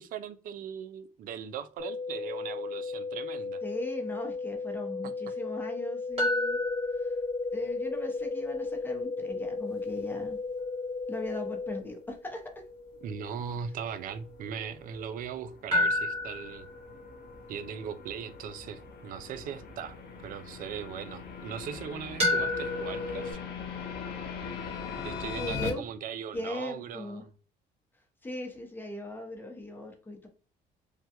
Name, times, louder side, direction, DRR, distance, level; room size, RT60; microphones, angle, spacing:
voice 1, 0.0-3.6 13.0-16.7 17.5-20.0 20.2-23.4 25.0-27.3, right 7 dB, 55° right, 0.4 m, -39 dB
sound 1, 1.8-11.8, left 4 dB, 85° right, 1.0 m, -36 dB
voice 2, 3.6-6.6 7.0-7.2 7.5-10.4 11.1-12.6 25.4-25.8 26.3-27.2 28.2-30.3, left 1 dB, 10° left, 0.7 m, -39 dB
sound 2, 6.2-15.1 15.7-20.8 22.2-23.3, left 2 dB, 35° right, 1.6 m, -34 dB
sound 3, 14.2-25.7, left 5 dB, 70° left, 0.7 m, -41 dB
3.3 x 2.2 x 2.8 m
cardioid pair, 110°, 17 cm